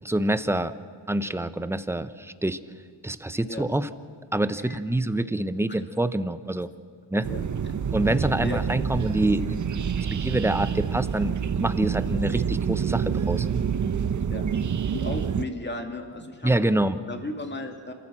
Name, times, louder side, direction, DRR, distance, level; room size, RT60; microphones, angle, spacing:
voice 1, 0.0-0.7 1.1-2.6 3.0-3.9 4.3-6.7 7.1-7.3 7.9-13.5 16.4-17.0, right 1 dB, 5° right, 12 dB, 0.7 m, -26 dB
sound 1, 7.2-15.4, right 7 dB, 40° right, 0.7 m, -27 dB
voice 2, 14.3-14.6 14.9-16.5 17.1-17.9, left 2 dB, 20° left, 4 dB, 2.4 m, -34 dB
28.0 x 14.5 x 7.5 m, 2.1 s
wide cardioid pair, 110°, 47 cm